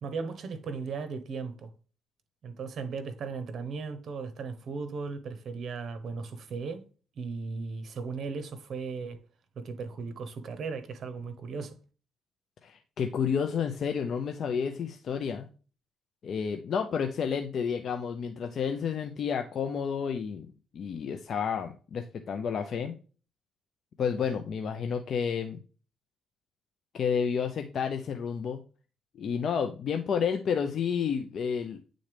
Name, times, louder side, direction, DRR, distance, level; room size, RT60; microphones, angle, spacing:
voice 1, 0.0-1.7 2.4-6.8 7.2-9.2 9.6-11.8, right 4 dB, 60° right, 1.0 m, -37 dB
voice 2, 12.6-15.5 16.2-20.5 20.7-23.0 24.0-25.6 26.9-28.6 29.2-31.8, left 7 dB, 60° left, 0.6 m, -30 dB
8.7 x 3.8 x 3.4 m
cardioid pair, 90°, 0 cm